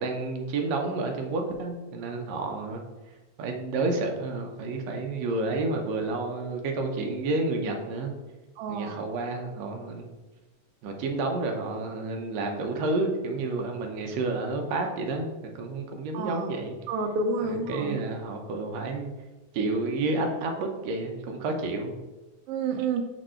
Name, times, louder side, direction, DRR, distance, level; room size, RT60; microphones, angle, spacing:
voice 1, 0.0-2.8 3.4-8.1 8.7-10.1 10.8-15.3 15.6-16.8 17.4-19.1 19.5-21.9, right 3 dB, 70° right, 3 dB, 1.9 m, -30 dB
voice 2, 8.6-9.0 16.1-16.5 16.9-18.0 22.5-23.0, right 4 dB, 90° right, 5 dB, 1.3 m, -29 dB
5.2 x 4.5 x 4.4 m, 1.1 s
omnidirectional pair, 3.5 m